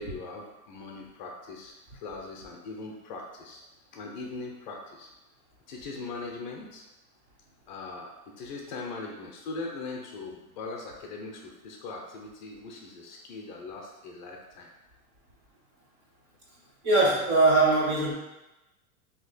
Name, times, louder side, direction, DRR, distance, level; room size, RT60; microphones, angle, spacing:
voice 1, 0.0-1.7 2.0-3.6 3.9-5.1 5.7-6.8 7.7-8.1 8.4-14.7, left 3 dB, 35° left, 0 dB, 0.5 m, -40 dB
voice 2, 16.8-18.1, right 2 dB, 25° right, -4 dB, 0.6 m, -21 dB
2.9 x 2.8 x 3.9 m, 1.0 s
supercardioid pair, 180°, 43 cm